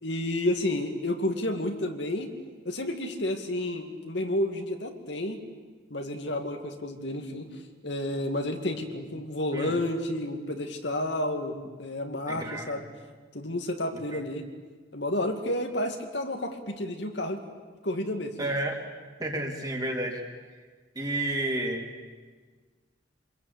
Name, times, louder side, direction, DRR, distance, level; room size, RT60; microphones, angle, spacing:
voice 1, 0.0-2.3 2.6-5.4 5.9-12.9 13.3-14.5 14.9-17.4 17.8-18.5, left 1 dB, 65° left, 4 dB, 2.4 m, -31 dB
voice 2, 12.3-12.6 14.1-14.2 18.4-18.8 19.2-20.2 20.9-21.9, right 1 dB, 20° right, 1 dB, 3.4 m, -30 dB
26.5 x 22.0 x 8.6 m, 1.4 s
head